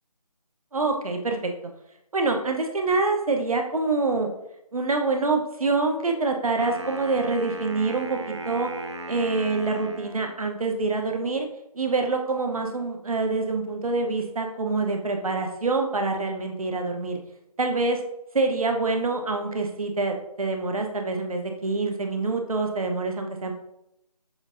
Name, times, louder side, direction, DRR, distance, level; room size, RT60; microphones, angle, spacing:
voice 1, 0.7-1.5 2.1-4.3 4.7-8.7 9.1-11.5 11.7-17.2 17.6-18.0 18.3-23.5, right 3 dB, 60° right, 3 dB, 0.8 m, -26 dB
Wind instrument woodwind instrument, 6.5-10.4, right 1 dB, 45° right, 0.4 m, -37 dB
7.0 x 2.6 x 2.5 m, 0.83 s
figure-of-eight pair, 165°, 20 cm